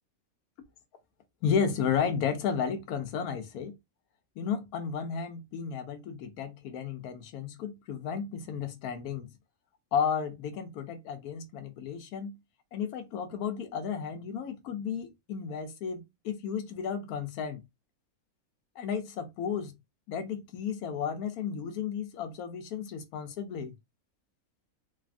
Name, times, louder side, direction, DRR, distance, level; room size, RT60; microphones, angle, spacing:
voice 1, 1.4-3.8 4.4-9.3 9.9-12.4 12.7-17.6 18.8-19.7 20.1-23.7, left 7 dB, 80° left, 1.1 m, -33 dB
3.2 x 2.3 x 2.4 m
omnidirectional pair, 1.6 m